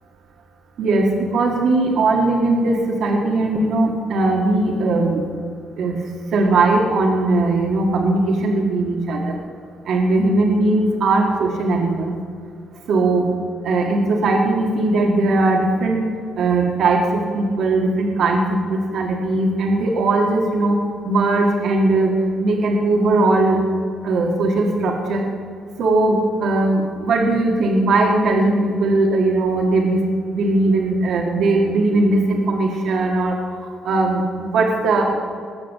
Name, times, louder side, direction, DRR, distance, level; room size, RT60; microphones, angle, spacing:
voice 1, 0.8-5.2 5.8-6.0 6.3-9.4 9.9-12.1 12.9-13.3 13.6-16.0 16.4-17.0 17.3-18.4 18.7-20.8 21.1-22.1 22.4-23.6 24.0-25.2 25.8-30.0 30.3-33.4 33.8-35.1, right 2 dB, 70° right, 1 dB, 1.8 m, -19 dB
20.5 x 6.9 x 7.3 m, 2.1 s
cardioid pair, 90°, 0 cm